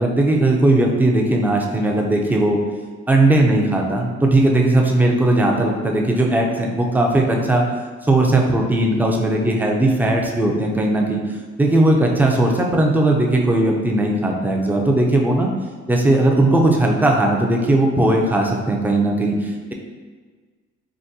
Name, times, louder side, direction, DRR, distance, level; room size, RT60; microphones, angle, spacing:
voice 1, 0.0-2.6 3.1-7.7 8.0-11.2 11.6-15.5 15.9-19.7, right 1 dB, 5° right, 0 dB, 0.4 m, -18 dB
3.6 x 2.2 x 2.7 m, 1.5 s
cardioid pair, 90°, 30 cm